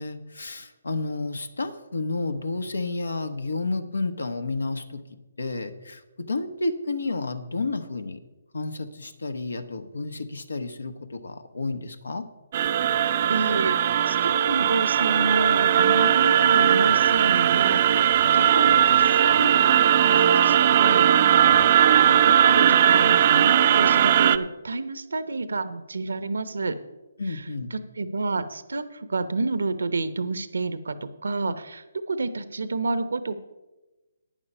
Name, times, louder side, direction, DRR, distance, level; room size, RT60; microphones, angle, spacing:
voice 1, 0.0-5.0 5.4-8.2 8.5-12.3 27.2-27.7, left 3 dB, 85° left, 10 dB, 1.1 m, -31 dB
sound 1, 12.5-24.4, right 10 dB, 40° right, 0.5 m, -19 dB
voice 2, 13.3-18.0 18.3-26.8 27.3-33.4, right 3 dB, 75° right, 13 dB, 0.9 m, -30 dB
11.5 x 9.1 x 5.5 m, 1.1 s
hypercardioid pair, 150°, 0 cm